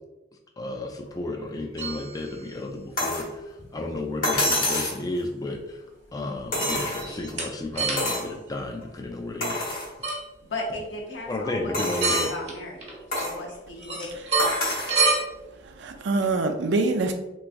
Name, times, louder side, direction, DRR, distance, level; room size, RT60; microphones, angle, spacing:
voice 1, 0.6-5.8 6.1-9.7 11.3-12.3, left 2 dB, 20° left, 3 dB, 0.3 m, -32 dB
sound 1, 1.8-2.3 3.6-3.7 4.3-4.4 6.6-7.5 7.7-8.3 10.0-10.2 11.8-12.5 12.8-13.5 13.8-15.2, right 3 dB, 35° right, 1.0 m, -27 dB
sound 2, 3.0-3.3 4.2-5.0 6.5-7.3 8.0-8.3 8.8-8.9 9.4-9.9 10.5-10.6 11.7-12.4 13.1-13.4 14.4-15.0 16.2-16.3, left 1 dB, 50° left, 1.1 m, -27 dB
voice 2, 10.4-12.9 13.2-14.1, left 1 dB, 70° left, -1 dB, 0.9 m, -36 dB
voice 3, 14.5-15.2 15.5-17.1, right 3 dB, 65° right, 6 dB, 0.4 m, -26 dB
3.5 x 3.1 x 2.5 m, 1.0 s
head